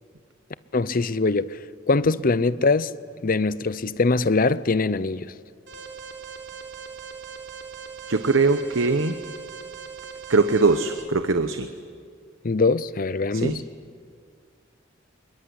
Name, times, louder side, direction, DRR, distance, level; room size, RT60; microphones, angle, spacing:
voice 1, 0.7-1.6 1.9-2.9 3.2-5.3 12.4-13.6, left 3 dB, 45° left, 0.6 m, -22 dB
Alarm, 5.7-11.0, right 6 dB, 60° right, 3.6 m, -40 dB
voice 2, 8.1-9.1 10.3-11.7 13.3-13.6, right 3 dB, 80° right, 1.0 m, -21 dB
25.5 x 22.0 x 9.8 m
head